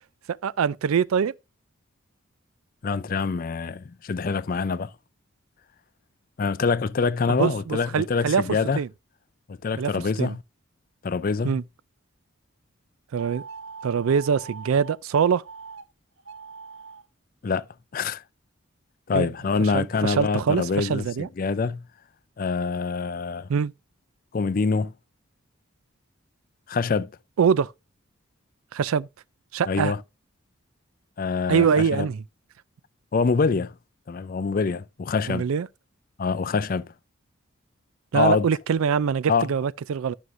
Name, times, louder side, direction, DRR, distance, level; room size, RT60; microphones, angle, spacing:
voice 1, 0.4-1.3 7.4-8.9 9.8-9.9 10.2-10.3 11.4-11.6 13.1-13.4 13.8-15.4 19.1-19.3 19.7-21.3 23.5-23.7 27.4-27.7 28.7-29.1 29.5-29.9 31.5-32.2 35.3-35.7 38.1-40.1, right 6 dB, 80° right, 0.4 m, -23 dB
voice 2, 2.8-4.9 6.4-8.8 9.5-10.4 11.0-11.6 17.4-17.7 17.9-18.2 19.1-21.8 22.4-23.5 24.3-24.9 26.7-27.1 29.7-30.0 31.2-32.1 33.1-33.7 34.1-35.5 36.2-36.9 38.1-38.4 39.3-39.5, left 4 dB, 40° left, 0.4 m, -25 dB
sound 1, 13.2-15.0 15.4-15.8 16.2-17.0, right 5 dB, 65° right, 0.8 m, -42 dB
11.5 x 6.3 x 2.5 m
head